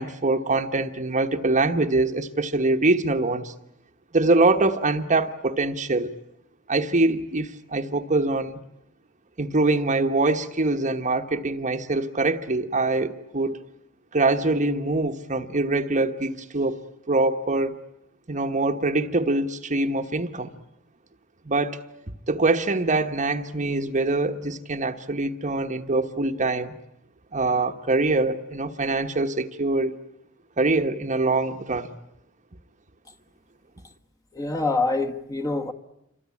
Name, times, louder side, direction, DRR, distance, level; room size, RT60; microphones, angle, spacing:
voice 1, 0.0-3.5 4.1-6.1 6.7-8.6 9.4-13.6 14.1-16.8 17.1-17.8 18.3-20.5 21.4-21.8 22.3-26.8 27.3-30.0 30.6-31.9, right 2 dB, 35° right, 1.2 m, -24 dB
voice 2, 34.3-35.7, left 3 dB, 15° left, 1.5 m, -25 dB
28.0 x 24.0 x 8.5 m
head